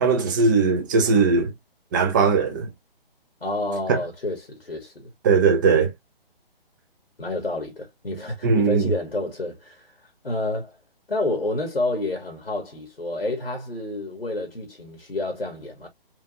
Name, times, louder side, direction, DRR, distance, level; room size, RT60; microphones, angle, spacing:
voice 1, 0.0-1.5 1.9-2.7 3.9-4.0 5.2-5.9 8.4-8.9, right 4 dB, 20° right, 0.6 m, -19 dB
voice 2, 3.4-5.1 7.2-9.9 10.2-10.8 11.1-15.9, left 2 dB, 90° left, 1.6 m, -29 dB
4.6 x 2.5 x 2.4 m
figure-of-eight pair, 140°, 30 cm